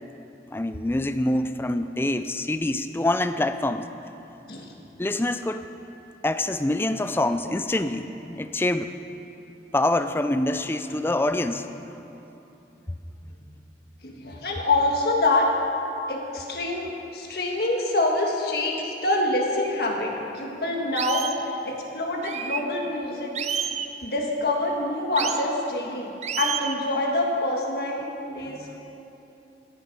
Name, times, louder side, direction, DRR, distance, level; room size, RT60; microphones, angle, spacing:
voice 1, 0.4-3.9 5.0-5.6 6.2-8.9 9.7-11.7 28.5-28.8, left 1 dB, 15° left, 10 dB, 0.4 m, -25 dB
voice 2, 14.0-15.5 16.1-23.3 24.0-26.1 26.4-28.8, left 2 dB, 60° left, 0 dB, 1.7 m, -26 dB
FX - piar pajaro domestico, 19.6-19.7 20.3-20.4 21.0-21.4 22.2-22.6 23.3-23.9 25.2-25.4 26.2-26.8, right 8 dB, 40° right, 0.5 m, -30 dB
17.0 x 8.2 x 5.4 m, 2.9 s
head